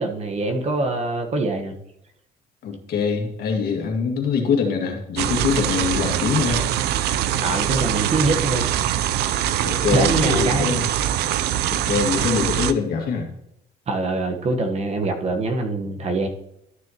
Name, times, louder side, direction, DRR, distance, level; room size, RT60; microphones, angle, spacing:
voice 1, 0.0-1.7 7.4-8.7 9.9-10.8 11.7-11.8 13.9-16.3, right 2 dB, 40° right, 4 dB, 1.2 m, -24 dB
voice 2, 2.6-6.7 9.6-10.8 11.7-13.3, left 5 dB, 65° left, 2 dB, 2.0 m, -23 dB
sound 1, 5.2-12.7, right 11 dB, 75° right, 0.5 m, -23 dB
12.5 x 6.4 x 3.0 m, 0.78 s
cardioid pair, 110°, 17 cm